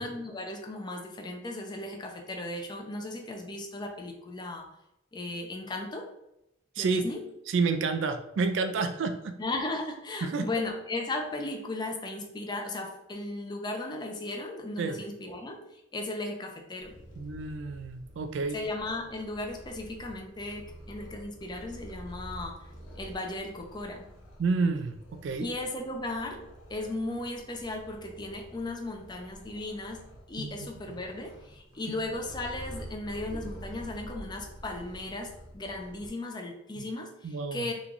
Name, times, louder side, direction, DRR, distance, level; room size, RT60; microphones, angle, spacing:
voice 1, 0.0-4.7 5.1-6.1 6.8-7.2 9.4-16.9 18.5-22.7 23.0-24.1 25.4-37.7, left 2 dB, 20° left, 2 dB, 0.4 m, -36 dB
voice 2, 6.8-7.1 7.5-9.4 10.2-10.5 14.8-15.0 17.2-18.6 24.4-25.5 30.4-30.5 31.9-32.0 36.8-36.9 37.2-37.7, right 4 dB, 70° right, 8 dB, 0.3 m, -29 dB
Purr, 16.8-36.1, equal, 80° left, 1.0 m, -48 dB
3.0 x 2.2 x 3.8 m, 0.86 s
head